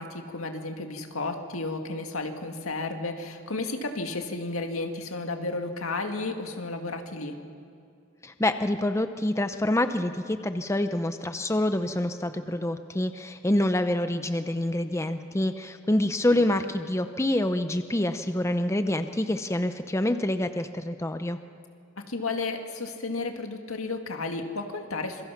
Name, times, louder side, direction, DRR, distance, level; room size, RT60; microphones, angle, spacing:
voice 1, 0.0-7.3 22.0-25.2, left 3 dB, 85° left, 5 dB, 2.1 m, -33 dB
voice 2, 8.2-21.4, left 1 dB, 15° left, 9 dB, 0.6 m, -26 dB
26.5 x 23.5 x 5.8 m, 2.5 s
head